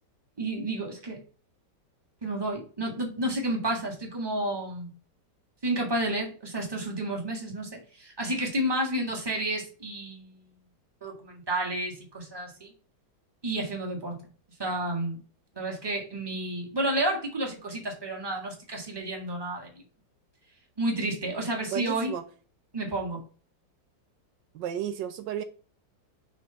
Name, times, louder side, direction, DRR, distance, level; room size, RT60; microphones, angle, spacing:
voice 1, 0.4-1.2 2.2-4.9 5.6-10.5 11.0-12.7 13.4-14.2 14.6-15.2 15.5-19.8 20.8-22.1 22.7-23.2, right 1 dB, 15° right, 0 dB, 1.5 m, -31 dB
voice 2, 21.7-22.2 24.5-25.4, right 9 dB, 80° right, 9 dB, 1.2 m, -32 dB
5.1 x 3.5 x 5.3 m, 0.39 s
omnidirectional pair, 1.9 m